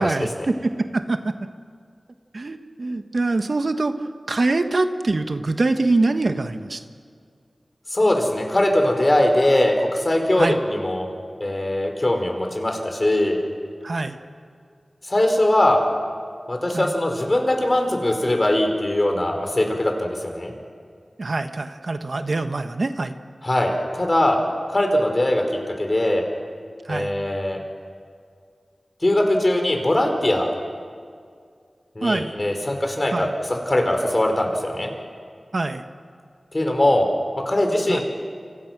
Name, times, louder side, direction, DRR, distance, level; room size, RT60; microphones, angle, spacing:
voice 1, 0.0-1.3 2.3-6.8 10.4-10.6 13.8-14.2 16.7-16.9 21.2-23.1 26.8-27.1 32.0-32.3 33.1-33.3 35.5-35.8 37.9-38.0, right 2 dB, 65° right, 8 dB, 1.3 m, -24 dB
voice 2, 7.9-11.1 11.4-13.4 15.1-15.8 16.5-20.5 23.4-24.4 24.7-25.4 25.8-26.3 26.9-27.6 29.0-30.5 32.0-34.9 36.5-37.1 37.5-38.0, left 1 dB, 40° left, 3 dB, 5.1 m, -21 dB
29.0 x 25.5 x 6.1 m, 2.1 s
cardioid pair, 45°, 0 cm